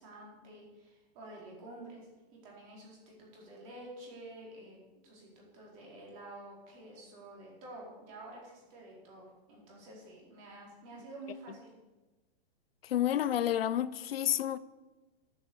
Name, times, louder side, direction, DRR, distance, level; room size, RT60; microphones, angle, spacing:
voice 1, 0.0-4.8 5.0-11.7, right 1 dB, 30° right, 4.2 m, -50 dB
voice 2, 12.8-14.6, left 11 dB, 65° left, 0.7 m, -30 dB
10.5 x 8.2 x 7.9 m
hypercardioid pair, 170°, 32 cm